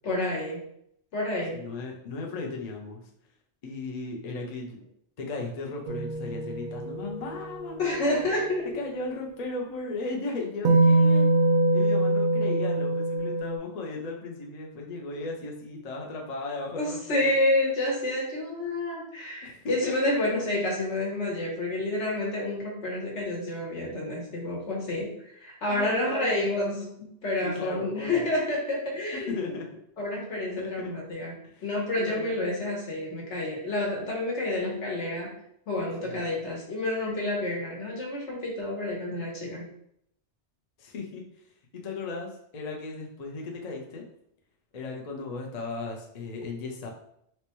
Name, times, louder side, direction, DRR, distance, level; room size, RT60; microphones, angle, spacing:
voice 1, 0.0-0.6 1.1-1.6 7.8-8.8 16.7-29.6 30.0-35.4 35.7-39.7, left 1 dB, 75° left, -2 dB, 1.3 m, -29 dB
voice 2, 1.5-3.0 3.6-4.8 5.2-8.2 8.7-11.3 11.7-17.2 19.4-20.3 25.7-26.9 27.4-28.3 29.3-29.7 30.6-30.9 31.6-31.7 32.0-32.4 36.0-36.3 40.8-41.2 41.7-44.0 44.7-46.9, left 3 dB, 50° left, 0 dB, 0.5 m, -36 dB
sound 1, 5.9-8.2 10.6-13.6, right 2 dB, 60° right, 0.6 m, -24 dB
4.1 x 2.2 x 2.9 m, 0.73 s
omnidirectional pair, 1.2 m